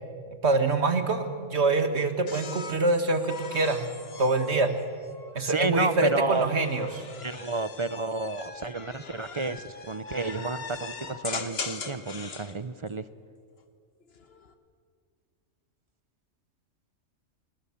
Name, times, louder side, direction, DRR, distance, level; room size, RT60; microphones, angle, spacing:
voice 1, 0.4-3.9 4.2-4.7 5.4-7.0, right 3 dB, 60° right, 8 dB, 1.9 m, -25 dB
sound 1, 2.3-5.5 6.3-12.5 14.0-14.5, left 4 dB, 55° left, 1.5 m, -40 dB
voice 2, 5.4-6.5 7.2-13.0, right 3 dB, 35° right, 14 dB, 0.5 m, -31 dB
28.5 x 19.5 x 7.2 m, 2.2 s
omnidirectional pair, 1.3 m